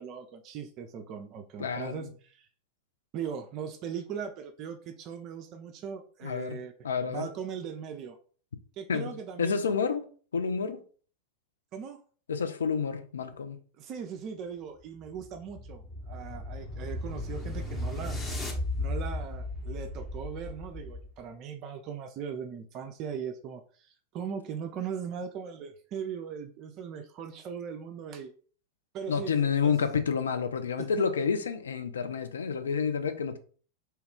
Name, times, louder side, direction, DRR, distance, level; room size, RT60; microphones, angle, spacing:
voice 1, 0.0-2.5 3.1-6.7 7.1-8.2 8.8-9.9 11.7-12.0 13.8-18.2 18.8-28.3 28.9-29.7 30.8-31.1, right 7 dB, 35° right, 0.4 m, -39 dB
voice 2, 1.6-2.1 6.2-6.6 6.8-7.3 8.9-9.1 9.4-10.0 10.3-10.8 12.3-13.6 29.1-33.4, left 6 dB, 70° left, 0.4 m, -29 dB
sound 1, 14.8-21.2, left 2 dB, 15° left, 0.8 m, -35 dB
2.8 x 2.3 x 3.5 m
figure-of-eight pair, 90°, 0 cm